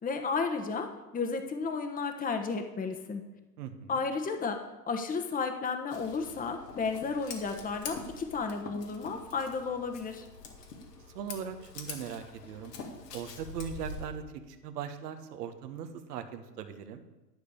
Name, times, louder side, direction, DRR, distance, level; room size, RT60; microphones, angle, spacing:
voice 1, 0.0-3.2 3.9-10.3, left 4 dB, 15° left, 6 dB, 1.1 m, -33 dB
voice 2, 3.6-4.0 11.1-12.7 13.1-17.0, right 8 dB, 75° right, 8 dB, 1.3 m, -40 dB
Scissors, 5.9-14.1, left 4 dB, 80° left, 2.0 m, -45 dB
11.0 x 5.1 x 8.4 m, 1.0 s
hypercardioid pair, 95°, 47 cm